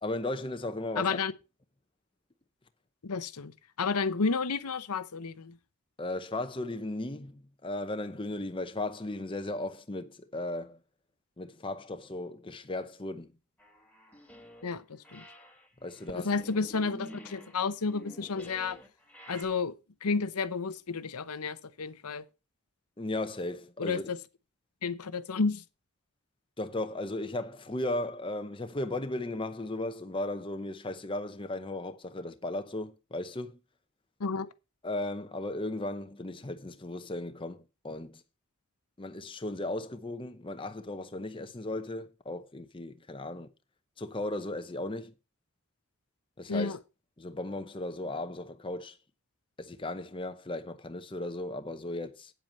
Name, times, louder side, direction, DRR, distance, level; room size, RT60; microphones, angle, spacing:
voice 1, 0.0-1.2 6.0-10.8 11.4-13.3 15.8-16.3 23.0-24.0 26.6-33.6 34.8-38.2 39.0-43.5 44.0-45.1 46.4-46.8 47.2-49.0 49.6-52.3, left 2 dB, 25° left, 0.8 m, -36 dB
voice 2, 1.0-1.3 3.0-5.6 14.6-15.2 16.2-18.8 19.3-19.7 20.0-22.2 23.8-24.2 24.8-25.6 34.2-34.5 46.5-46.8, left 4 dB, 90° left, 0.9 m, -31 dB
sound 1, 13.6-14.8 15.0-19.4, equal, 5° left, 1.8 m, -49 dB
9.1 x 7.8 x 5.4 m
head